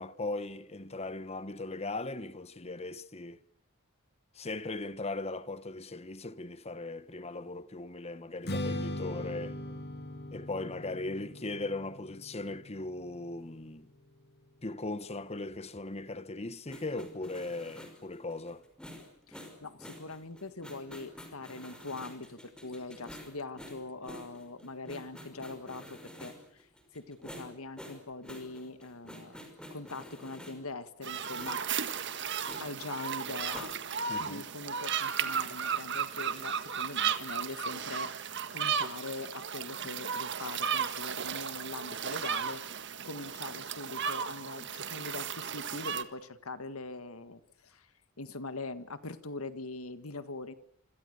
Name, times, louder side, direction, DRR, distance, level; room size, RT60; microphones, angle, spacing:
voice 1, 0.0-3.4 4.3-9.6 10.3-13.9 14.6-18.6 34.1-34.4, left 2 dB, 30° left, 1.1 m, -38 dB
Strum, 8.4-14.7, left 1 dB, 50° left, 3.0 m, -40 dB
sound 1, 16.7-30.7 31.3-34.1, equal, 5° left, 5.6 m, -49 dB
voice 2, 19.3-26.7 26.9-29.4 29.7-32.1 32.6-33.7 34.2-38.1 38.5-47.9 48.2-50.5, left 3 dB, 80° left, 1.8 m, -42 dB
sound 2, 31.0-46.0, right 7 dB, 55° right, 1.7 m, -35 dB
27.0 x 26.5 x 6.7 m
head